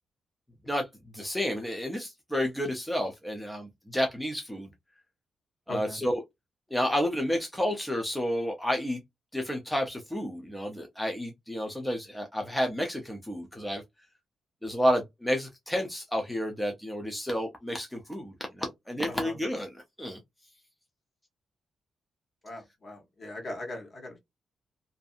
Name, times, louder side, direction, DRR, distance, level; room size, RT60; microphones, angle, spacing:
voice 1, 1.1-4.7 5.7-6.2 6.7-9.0 9.3-13.8 14.6-19.7 20.0-20.2, equal, 5° left, 0.4 m, -30 dB
voice 2, 5.7-6.0 19.1-19.4 22.4-24.2, left 1 dB, 35° left, 0.9 m, -39 dB
2.5 x 2.5 x 2.3 m
wide cardioid pair, 150°, 0 cm